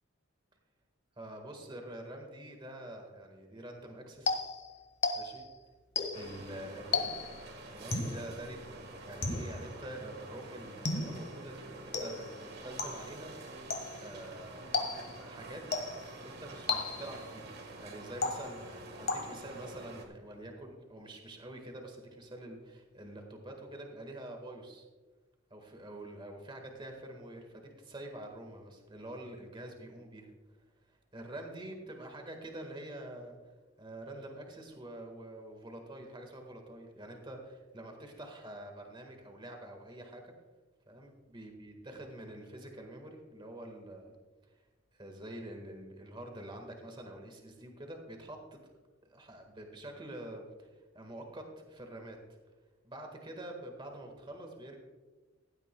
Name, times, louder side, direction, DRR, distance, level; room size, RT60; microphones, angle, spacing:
voice 1, 1.2-4.4 5.1-5.4 6.1-7.2 7.7-13.3 14.0-14.7 15.3-15.6 16.2-17.5 17.8-24.9 25.5-30.3 30.9-33.4 33.8-40.3 40.9-44.1 44.4-44.5 44.9-48.7 49.0-52.2 52.8-54.8, right 1 dB, 25° right, 3 dB, 1.6 m, -46 dB
sound 1, 4.3-5.5 6.0-6.4 6.9-7.4 7.9-8.3 9.2-9.7 10.8-11.3 11.9-12.4 12.8-13.2 13.7-14.1 14.7-15.2 15.7-16.2 16.7-17.2 18.2-18.7 19.1-19.6, left 3 dB, 55° left, 1.6 m, -34 dB
sound 2, 6.1-20.1, right 2 dB, 55° right, 1.6 m, -48 dB
16.0 x 12.0 x 2.2 m, 1.3 s
head